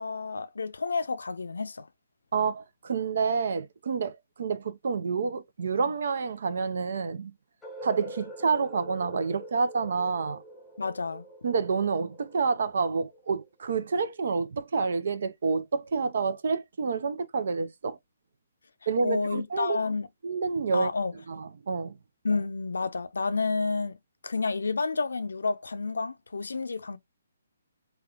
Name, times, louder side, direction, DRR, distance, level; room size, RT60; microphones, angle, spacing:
voice 1, 0.0-1.9 10.8-11.2 19.0-20.1 20.7-21.1 22.2-24.0 24.2-27.0, left 4 dB, 75° left, 0.5 m, -30 dB
voice 2, 2.3-7.3 7.8-10.4 11.4-18.0 18.9-19.8 20.2-20.9 21.3-22.0, right 5 dB, 60° right, 0.5 m, -28 dB
sound 1, 7.6-13.5, equal, 5° left, 0.8 m, -45 dB
3.5 x 2.2 x 2.4 m
figure-of-eight pair, 135°, 0 cm